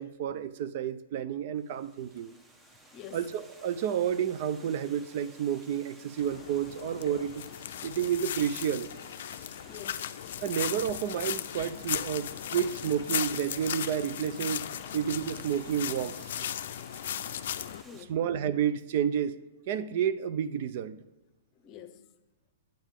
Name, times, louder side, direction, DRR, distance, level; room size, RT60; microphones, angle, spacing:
voice 1, 0.0-2.3 3.1-7.4 7.8-8.9 10.4-14.7 14.9-16.5 18.1-19.3 19.7-21.0, right 9 dB, 55° right, 0.5 m, -30 dB
Water, 1.5-18.0, right 1 dB, 15° right, 1.0 m, -55 dB
voice 2, 2.6-3.4 9.7-10.3 14.8-15.0 17.3-17.4 17.8-18.2 21.5-22.1, left 9 dB, 35° left, 0.8 m, -48 dB
sound 1, 6.2-17.8, left 10 dB, 65° left, 0.4 m, -37 dB
8.9 x 7.3 x 3.6 m
hypercardioid pair, 120°, 0 cm